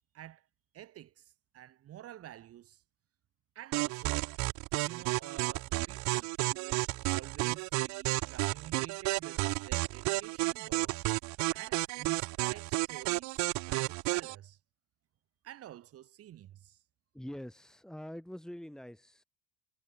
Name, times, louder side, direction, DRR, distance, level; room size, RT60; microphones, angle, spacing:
voice 1, 0.1-0.5 0.7-2.8 3.5-4.3 4.8-11.0 11.5-14.6 15.4-16.8, right 12 dB, 45° right, 4.5 m, -50 dB
sound 1, 3.7-14.3, right 23 dB, 60° right, 1.0 m, -32 dB
voice 2, 17.1-19.2, equal, ahead, 7.2 m, -44 dB
supercardioid pair, 120°, 32 cm